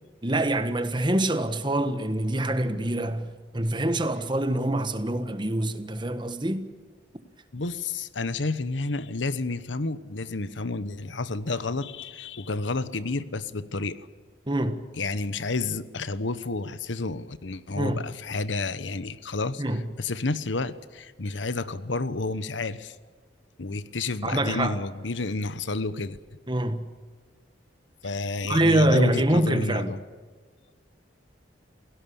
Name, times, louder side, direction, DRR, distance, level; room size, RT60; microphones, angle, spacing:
voice 1, 0.2-6.6 14.5-14.8 17.7-18.0 19.6-19.8 24.2-24.8 26.5-26.8 28.4-29.9, right 1 dB, 25° right, 1.4 m, -25 dB
voice 2, 7.5-14.0 15.0-19.6 20.0-23.0 23.6-26.2 28.0-30.0, left 3 dB, 80° left, 1.1 m, -30 dB
28.5 x 17.5 x 7.1 m
head